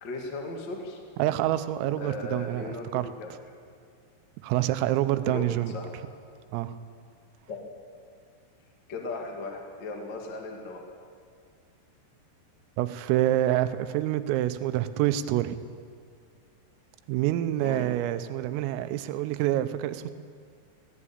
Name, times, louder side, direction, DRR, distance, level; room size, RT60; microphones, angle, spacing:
voice 1, 0.0-1.0 2.0-3.3 5.2-5.9 7.5-7.6 8.9-10.8 17.6-17.9, left 3 dB, 45° left, 1 dB, 1.4 m, -37 dB
voice 2, 1.2-3.1 4.4-5.8 6.5-6.8 12.8-15.6 17.1-20.1, right 13 dB, 85° right, 12 dB, 3.5 m, -27 dB
17.5 x 17.5 x 8.7 m, 2.1 s
omnidirectional pair, 5.8 m